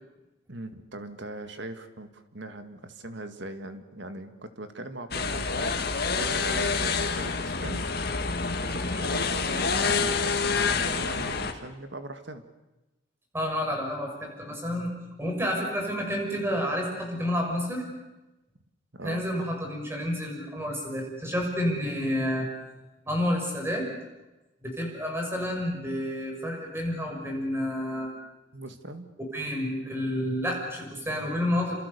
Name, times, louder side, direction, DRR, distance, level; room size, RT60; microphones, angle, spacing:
voice 1, 0.5-7.9 8.6-12.4 18.9-19.2 28.5-29.1, right 1 dB, 60° right, 8 dB, 2.1 m, -40 dB
cutting trees, 5.1-11.5, left 4 dB, 50° left, 2.0 m, -27 dB
voice 2, 13.3-14.9 15.2-17.8 19.0-22.5 23.0-23.9 24.6-28.1 29.2-31.8, equal, 10° right, 1 dB, 6.5 m, -29 dB
29.0 x 27.0 x 7.0 m, 1.0 s
head